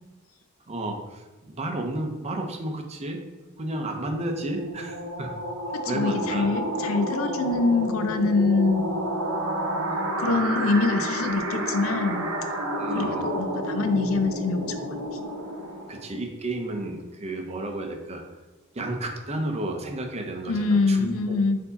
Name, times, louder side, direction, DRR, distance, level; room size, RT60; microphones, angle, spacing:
voice 1, 0.7-3.2 3.6-5.3 5.9-6.5 12.8-13.2 15.9-18.2 18.7-21.1, right 1 dB, 30° right, 4 dB, 0.6 m, -32 dB
sound 1, 3.8-16.2, right 1 dB, 75° right, 0.7 m, -30 dB
voice 2, 5.8-9.1 10.2-12.3 12.9-15.2 20.5-21.6, left 3 dB, 70° left, 8 dB, 0.4 m, -25 dB
4.4 x 2.7 x 4.0 m, 1.2 s
head